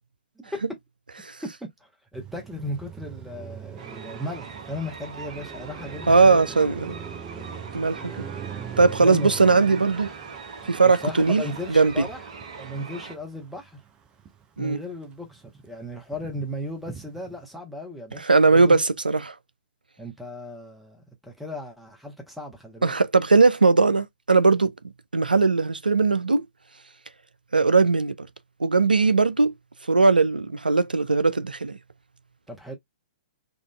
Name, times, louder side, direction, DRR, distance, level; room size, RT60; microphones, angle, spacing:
voice 1, 1.6-6.4 9.0-9.3 10.8-12.2 12.6-13.8 14.6-18.8 20.0-23.0 32.5-32.8, left 1 dB, ahead, 0.9 m, -36 dB
Car passing by, 2.1-14.6 14.9-17.4, right 7 dB, 15° right, 0.5 m, -42 dB
sound 1, 3.8-13.2, right 5 dB, 50° right, 0.8 m, -41 dB
voice 2, 6.1-7.0 7.7-8.3 8.8-10.1 10.7-11.4 11.7-12.1 14.6-14.8 18.2-19.3 22.8-24.7 25.1-26.4 27.5-28.3 28.6-29.5 29.9-31.8, right 4 dB, 80° right, 0.4 m, -19 dB
3.8 x 2.4 x 2.2 m
figure-of-eight pair, 115°, 5 cm